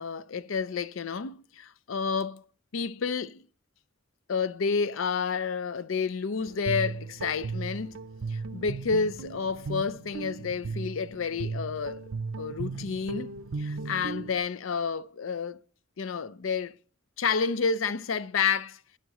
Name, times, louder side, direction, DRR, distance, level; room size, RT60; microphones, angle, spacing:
voice 1, 0.0-2.4 2.7-3.4 4.3-8.0 8.3-12.1 12.4-13.3 13.6-15.6 16.0-16.8 17.2-18.8, left 5 dB, 85° left, 0.5 m, -30 dB
Guitar, 6.4-14.4, right 4 dB, 90° right, 0.6 m, -36 dB
11.0 x 9.2 x 3.0 m
head